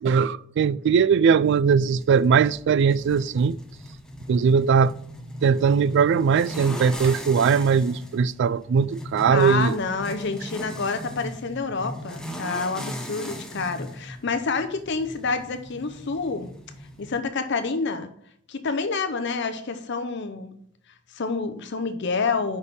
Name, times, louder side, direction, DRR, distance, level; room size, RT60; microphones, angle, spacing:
voice 1, 0.0-3.6 4.3-4.9 5.4-9.8, right 6 dB, 60° right, 0.3 m, -20 dB
sound 1, 1.7-17.2, equal, 5° left, 0.8 m, -38 dB
voice 2, 9.3-16.5 17.0-18.1 18.5-20.5 21.1-22.6, left 4 dB, 60° left, 0.6 m, -28 dB
6.3 x 5.4 x 5.4 m
head